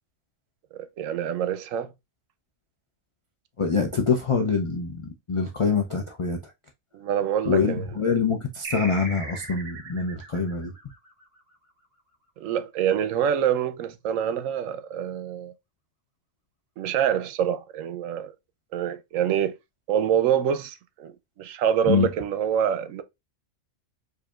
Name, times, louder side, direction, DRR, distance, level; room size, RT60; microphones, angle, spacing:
voice 1, 0.7-1.9 6.9-7.8 12.4-15.5 16.8-18.3 18.7-19.6 19.9-23.0, right 9 dB, 80° right, 1.0 m, -26 dB
voice 2, 3.6-6.5 7.5-10.7 21.8-22.1, left 5 dB, 55° left, 0.3 m, -25 dB
sound 1, 8.6-11.7, right 2 dB, 55° right, 1.2 m, -39 dB
4.9 x 2.7 x 2.3 m
omnidirectional pair, 1.4 m